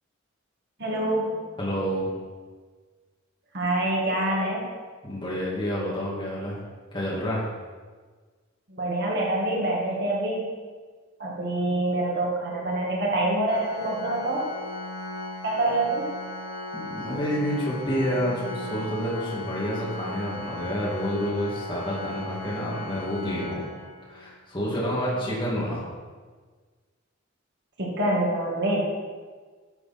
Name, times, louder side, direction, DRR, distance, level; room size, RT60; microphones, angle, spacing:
voice 1, 0.8-1.5 3.5-4.7 8.7-10.4 11.2-14.5 15.4-16.1 27.8-28.8, right 1 dB, 55° right, -3 dB, 1.9 m, -26 dB
voice 2, 1.6-2.1 5.0-6.6 6.9-7.4 16.7-23.6 24.1-25.9, equal, 25° left, -7 dB, 2.5 m, -29 dB
Organ, 13.5-24.3, left 2 dB, 85° left, 1.6 m, -37 dB
12.0 x 6.7 x 4.4 m, 1.5 s
head